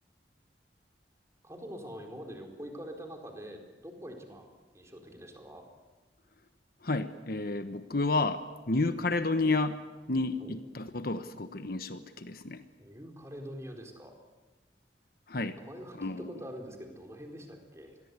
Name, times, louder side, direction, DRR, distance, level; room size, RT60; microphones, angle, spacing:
voice 1, 1.4-5.7 10.3-10.6 12.8-14.2 15.6-18.0, equal, 15° right, 3 dB, 4.3 m, -45 dB
voice 2, 6.8-9.8 10.1-12.6 15.3-15.6 16.0-16.3, left 3 dB, 55° left, 10 dB, 1.2 m, -31 dB
27.5 x 22.0 x 8.3 m, 1.2 s
head